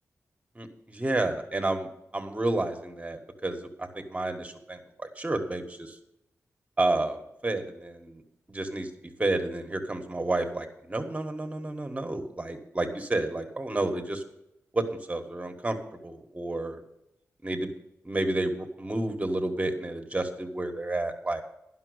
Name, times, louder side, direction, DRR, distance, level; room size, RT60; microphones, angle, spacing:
voice 1, 0.6-6.0 6.8-8.2 8.5-8.9 9.2-14.2 14.7-16.8 17.4-17.7 18.0-21.4, right 2 dB, 25° right, 6 dB, 1.6 m, -30 dB
11.0 x 5.9 x 8.0 m, 0.83 s
cardioid pair, 60°, 6 cm